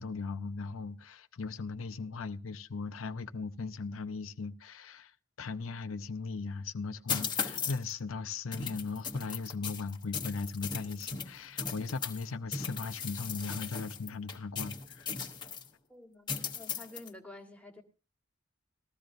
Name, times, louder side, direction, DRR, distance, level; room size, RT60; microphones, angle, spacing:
voice 1, 0.0-15.1, left 4 dB, 85° left, 0.6 m, -38 dB
sound 1, 7.1-7.9 8.5-12.2 12.5-15.7 16.3-17.1, left 6 dB, 20° left, 1.0 m, -37 dB
voice 2, 15.9-17.8, left 2 dB, 5° left, 1.4 m, -50 dB
19.5 x 14.0 x 2.6 m
head